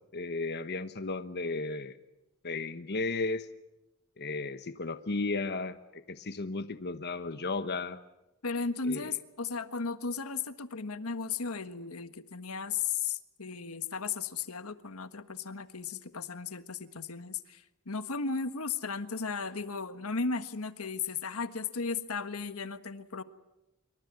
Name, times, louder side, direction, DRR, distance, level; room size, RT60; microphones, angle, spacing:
voice 1, 0.1-2.0 2.4-3.5 4.2-8.0 8.9-9.1, left 3 dB, 50° left, 10 dB, 1.1 m, -34 dB
voice 2, 8.4-23.2, left 5 dB, 75° left, 11 dB, 1.5 m, -35 dB
26.0 x 23.5 x 9.6 m, 0.96 s
head